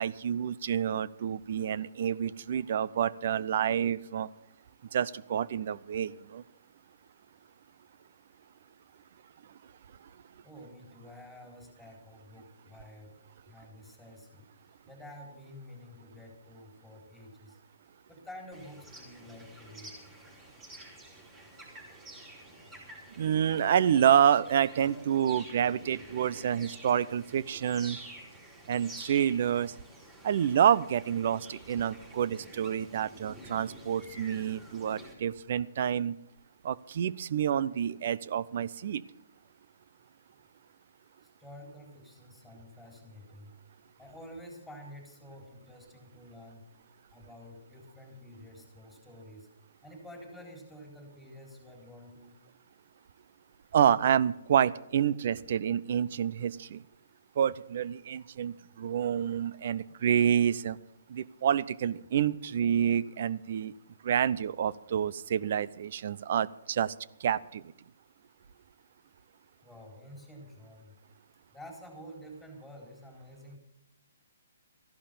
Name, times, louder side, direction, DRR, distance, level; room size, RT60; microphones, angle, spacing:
voice 1, 0.0-4.3 4.9-6.4 23.2-28.0 28.7-29.7 30.2-36.2 36.6-39.0 53.7-56.8 57.4-60.8 61.1-63.7 64.0-66.9 67.2-67.6, right 9 dB, 50° right, 19 dB, 0.6 m, -28 dB
voice 2, 10.4-13.2 13.5-14.5 14.9-17.6 18.1-20.0 41.2-43.5 44.0-46.6 47.1-49.5 49.8-52.4 69.6-71.0 71.5-73.6, left 1 dB, ahead, 1 dB, 4.1 m, -49 dB
sound 1, 18.5-35.1, right 1 dB, 15° right, 4.5 m, -49 dB
14.5 x 11.5 x 6.9 m, 0.80 s
hypercardioid pair, 150°, 0 cm